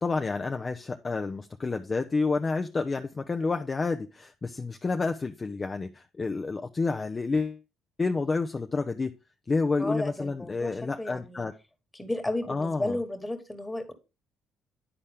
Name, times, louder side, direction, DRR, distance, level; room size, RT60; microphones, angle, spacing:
voice 1, 0.0-7.6 8.0-9.1 9.5-11.5 12.5-13.0, left 3 dB, 30° left, 5 dB, 0.5 m, -29 dB
voice 2, 9.8-11.4 11.9-13.9, left 1 dB, 15° left, 6 dB, 1.5 m, -33 dB
9.8 x 4.3 x 3.5 m, 0.29 s
supercardioid pair, 60°, 0 cm